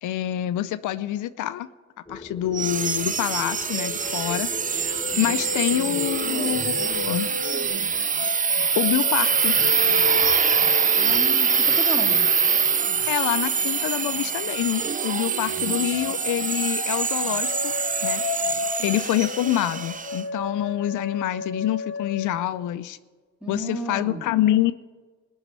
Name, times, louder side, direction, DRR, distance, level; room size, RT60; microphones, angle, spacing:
voice 1, 0.0-1.7 2.1-4.5 5.2-7.3 8.8-9.5 13.1-17.7 18.0-18.2 18.8-23.0 23.5-24.7, left 13 dB, 80° left, 12 dB, 0.6 m, -26 dB
sound 1, 2.1-7.1, left 2 dB, 15° left, 1.1 m, -40 dB
sound 2, 2.5-20.2, right 6 dB, 25° right, 0.6 m, -24 dB
sound 3, 3.5-14.6 15.2-22.4, left 4 dB, 40° left, 2.0 m, -34 dB
voice 2, 11.0-12.2 15.4-15.8 23.4-24.2, equal, 5° right, -1 dB, 3.0 m, -34 dB
18.0 x 6.4 x 8.9 m, 1.4 s
cardioid pair, 90°, 30 cm